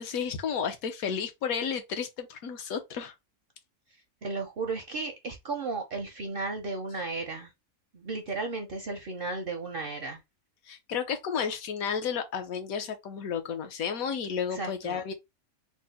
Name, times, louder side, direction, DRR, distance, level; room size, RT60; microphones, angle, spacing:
voice 1, 0.0-3.1 10.7-15.1, left 7 dB, 75° left, 1.2 m, -32 dB
voice 2, 4.2-7.5 7.9-10.2 14.5-15.1, right 3 dB, 60° right, 0.6 m, -34 dB
3.6 x 2.1 x 4.0 m
omnidirectional pair, 1.6 m